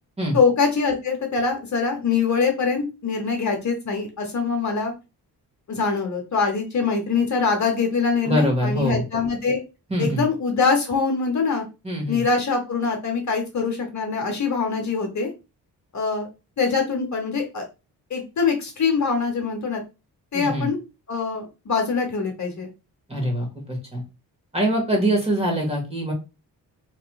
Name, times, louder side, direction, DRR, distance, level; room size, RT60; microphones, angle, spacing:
voice 1, 0.3-4.9 5.7-9.6 10.0-11.6 12.1-15.3 15.9-16.3 16.6-17.6 18.1-19.8 20.3-20.8 21.1-22.7, left 5 dB, 45° left, 3 dB, 0.9 m, -23 dB
voice 2, 8.2-9.0 9.9-10.2 11.8-12.2 20.3-20.7 23.1-24.0 24.5-26.1, equal, 15° right, 0 dB, 1.5 m, -24 dB
3.1 x 2.9 x 2.3 m, 0.28 s
cardioid pair, 70°, 40 cm